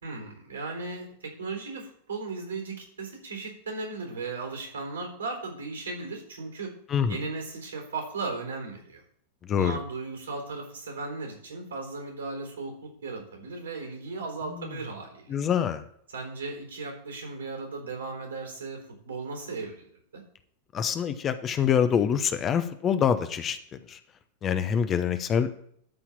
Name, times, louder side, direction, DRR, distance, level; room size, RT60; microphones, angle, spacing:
voice 1, 0.0-6.7 7.1-9.0 9.5-15.4 16.1-18.8 19.1-20.2, right 3 dB, 70° right, 3 dB, 3.8 m, -36 dB
voice 2, 9.4-9.8 14.5-14.7 15.3-15.8 20.7-23.6 23.9-24.0 24.4-25.5, left 8 dB, 25° left, 10 dB, 0.9 m, -25 dB
12.5 x 4.6 x 7.3 m, 0.66 s
figure-of-eight pair, 90°, 0 cm